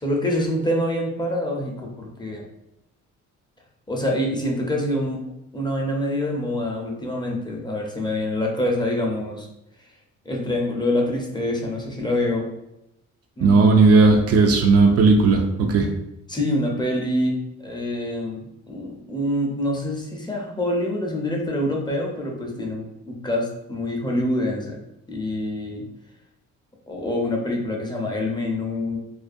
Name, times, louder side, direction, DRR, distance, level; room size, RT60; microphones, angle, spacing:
voice 1, 0.0-2.5 3.9-5.2 5.5-9.5 10.2-12.5 13.4-13.7 16.3-24.8 25.1-25.8 26.9-29.0, left 1 dB, 15° left, -1 dB, 0.5 m, -26 dB
voice 2, 13.4-15.9, right 3 dB, 55° right, 3 dB, 0.4 m, -15 dB
2.4 x 2.1 x 2.5 m, 0.87 s
cardioid pair, 90°, 30 cm